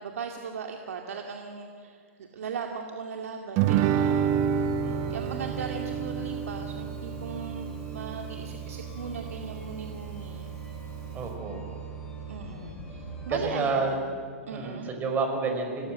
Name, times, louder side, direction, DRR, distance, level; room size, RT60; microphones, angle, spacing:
voice 1, 0.0-2.0 2.3-4.4 5.1-10.5 12.3-14.2 14.5-14.9, right 5 dB, 75° right, 3 dB, 2.3 m, -38 dB
Guitar, 3.6-8.6, right 8 dB, 40° right, 1.2 m, -28 dB
sound 1, 3.7-13.5, right 6 dB, 10° left, 6.4 m, -40 dB
voice 2, 4.8-5.2 11.1-11.6 13.3-14.0 14.5-15.9, right 4 dB, 20° right, 4 dB, 5.2 m, -30 dB
26.5 x 19.0 x 7.7 m, 2.4 s
hypercardioid pair, 125°, 8 cm